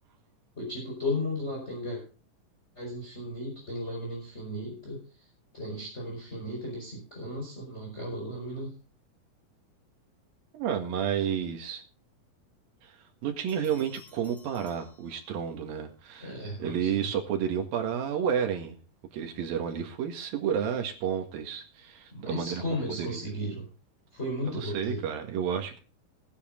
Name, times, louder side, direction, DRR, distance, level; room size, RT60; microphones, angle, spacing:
voice 1, 0.6-2.0 2.7-5.0 5.5-8.7 16.2-17.1 22.1-23.7 24.1-25.0, left 1 dB, 20° left, -2 dB, 4.9 m, -35 dB
voice 2, 10.5-11.8 12.8-12.9 13.2-16.3 16.6-18.8 19.1-22.6 23.0-23.3 24.4-25.8, right 8 dB, 85° right, 4 dB, 3.6 m, -31 dB
Bell, 13.5-15.7, left 3 dB, ahead, 4.2 m, -57 dB
18.0 x 10.0 x 3.7 m, 0.35 s
omnidirectional pair, 4.0 m